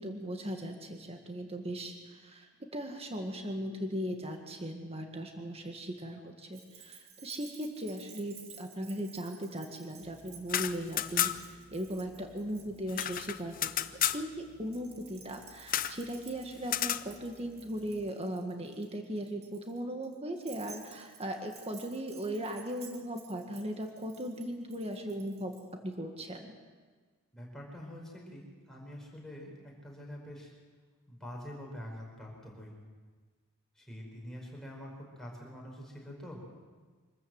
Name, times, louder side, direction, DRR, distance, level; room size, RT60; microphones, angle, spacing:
voice 1, 0.0-13.7 14.1-25.5 25.8-26.5, equal, 25° right, 3 dB, 1.8 m, -38 dB
Keys jangling, 6.5-13.9 14.7-25.7, right 6 dB, 45° right, 2.7 m, -55 dB
sound 1, 10.4-11.6 11.9-12.0 12.2-14.2 15.7-16.0 16.6-17.1, left 11 dB, 40° left, 0.6 m, -32 dB
voice 2, 27.3-30.5 31.1-32.7 33.7-36.4, equal, ahead, -2 dB, 5.1 m, -45 dB
25.5 x 13.5 x 7.8 m, 1.4 s
head